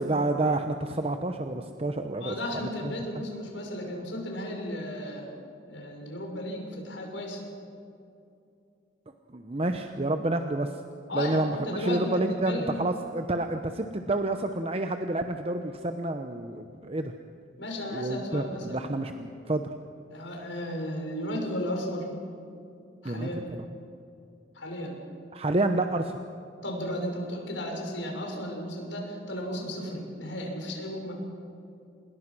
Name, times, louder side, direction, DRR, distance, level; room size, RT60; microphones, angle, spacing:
voice 1, 0.0-2.4 2.6-2.9 9.3-10.8 11.1-17.1 17.9-19.7 23.0-23.3 25.3-26.2, right 2 dB, 30° right, 7 dB, 0.9 m, -29 dB
voice 2, 2.2-5.3 5.7-7.4 11.1-12.8 17.6-18.8 20.1-22.1 23.0-23.4 24.5-25.0 26.6-31.1, left 1 dB, 85° left, 1 dB, 6.2 m, -34 dB
27.5 x 21.0 x 6.2 m, 2.6 s
head